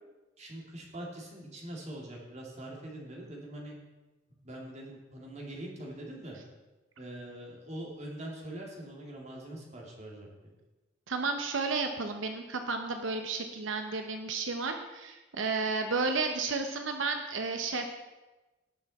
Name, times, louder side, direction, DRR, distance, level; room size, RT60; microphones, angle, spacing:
voice 1, 0.4-3.8 4.4-6.4 7.0-10.3, right 1 dB, 35° right, -1 dB, 2.5 m, -43 dB
voice 2, 11.1-18.0, right 4 dB, 85° right, 5 dB, 0.8 m, -32 dB
17.5 x 6.4 x 4.2 m, 1.1 s
head